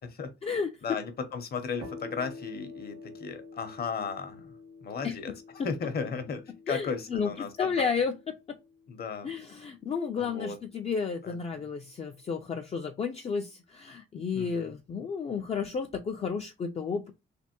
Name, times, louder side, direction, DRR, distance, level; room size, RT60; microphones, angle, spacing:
voice 1, 0.8-4.5 4.8-5.3 5.6-7.9 8.9-9.3 10.2-10.6 11.2-11.7 14.3-14.7, left 5 dB, 50° left, 0.8 m, -35 dB
sound 1, 1.8-9.3, left 3 dB, 85° right, 1.5 m, -48 dB
voice 2, 5.0-5.3 6.7-8.3 9.2-17.1, left 5 dB, 30° left, 0.3 m, -32 dB
3.3 x 2.9 x 2.8 m
cardioid pair, 130°, 21 cm